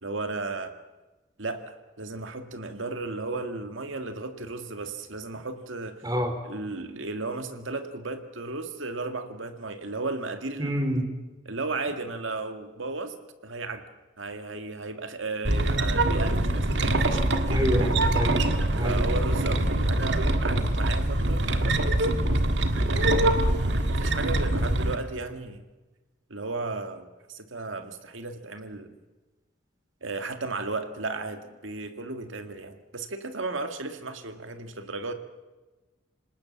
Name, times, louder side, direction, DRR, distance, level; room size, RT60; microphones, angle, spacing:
voice 1, 0.0-0.7 1.4-6.0 6.4-10.8 11.5-13.2 13.4-13.8 14.2-18.1 18.8-22.2 22.9-23.5 23.8-25.6 26.3-28.9 30.0-35.1, right 3 dB, 85° right, 7 dB, 2.0 m, -35 dB
voice 2, 6.0-6.3 10.6-11.1 17.5-18.4 18.8-19.0, equal, 20° right, 4 dB, 3.7 m, -27 dB
sound 1, 15.4-24.9, right 1 dB, 65° right, 1.7 m, -24 dB
27.0 x 19.0 x 7.4 m, 1.2 s
head